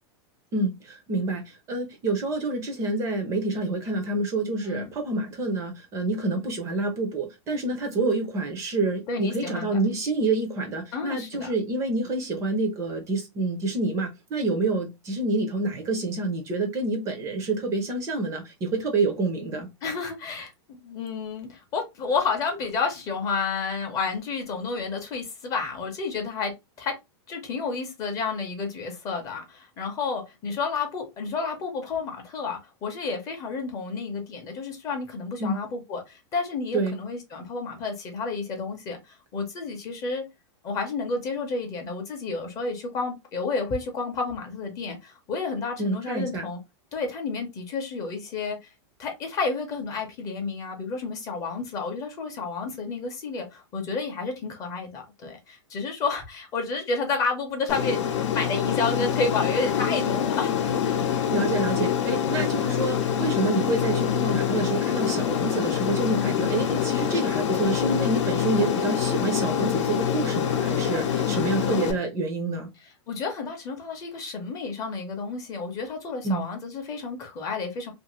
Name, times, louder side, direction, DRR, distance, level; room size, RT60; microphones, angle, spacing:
voice 1, 0.5-19.7 35.4-35.6 36.7-36.9 45.8-46.5 61.3-72.7 76.2-76.4, right 2 dB, 20° right, 0.5 m, -27 dB
voice 2, 9.1-9.8 10.9-11.5 19.8-26.5 26.8-26.9 27.3-40.2 40.6-46.6 46.9-48.7 49.0-58.0 58.3-61.1 66.1-66.4 71.5-71.8 73.1-77.9, left 4 dB, 20° left, 0.6 m, -31 dB
Aircraft, 57.7-71.9, left 9 dB, 80° left, 0.6 m, -25 dB
2.5 x 2.5 x 2.9 m
supercardioid pair, 165°, 15 cm